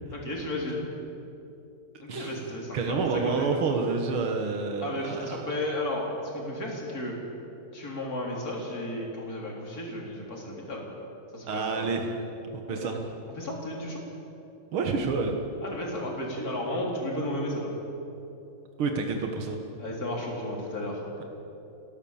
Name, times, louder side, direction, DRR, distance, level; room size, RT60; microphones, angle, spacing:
voice 1, 0.1-0.8 2.0-3.6 4.8-7.2 7.7-10.8 11.3-11.9 12.7-12.9 13.4-14.0 15.6-17.7 19.8-21.0, left 1 dB, 45° left, -2 dB, 4.2 m, -33 dB
voice 2, 2.1-2.4 2.7-5.4 11.5-12.2 12.5-13.0 14.7-15.4 18.8-19.6, right 4 dB, 85° right, 3 dB, 2.4 m, -29 dB
30.0 x 12.0 x 7.3 m, 2.9 s
omnidirectional pair, 2.3 m